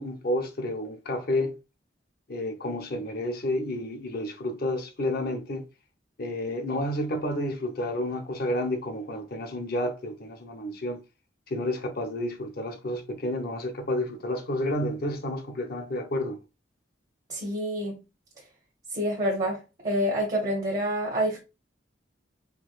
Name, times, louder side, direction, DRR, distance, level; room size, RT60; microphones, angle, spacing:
voice 1, 0.0-1.6 2.3-5.7 6.2-11.0 11.5-16.4, left 1 dB, 55° left, 0.6 m, -30 dB
voice 2, 17.3-18.0 18.9-19.6 19.8-21.4, equal, 40° right, 1.0 m, -27 dB
4.4 x 2.2 x 2.4 m
head